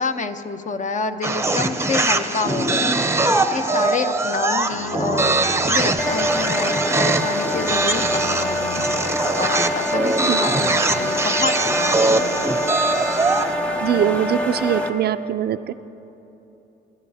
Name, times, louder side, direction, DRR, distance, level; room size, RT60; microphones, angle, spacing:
voice 1, 0.0-12.6, left 4 dB, 40° left, 8 dB, 0.8 m, -28 dB
sound 1, 1.2-13.5, right 2 dB, 15° right, 0.7 m, -22 dB
Bowed string instrument, 4.5-9.6, right 1 dB, 70° left, 2.0 m, -40 dB
sound 2, 6.0-14.9, left 1 dB, 5° left, 1.1 m, -25 dB
voice 2, 13.8-15.7, right 10 dB, 55° right, 13 dB, 0.4 m, -22 dB
25.5 x 12.0 x 2.8 m, 3.0 s
cardioid pair, 90°, 20 cm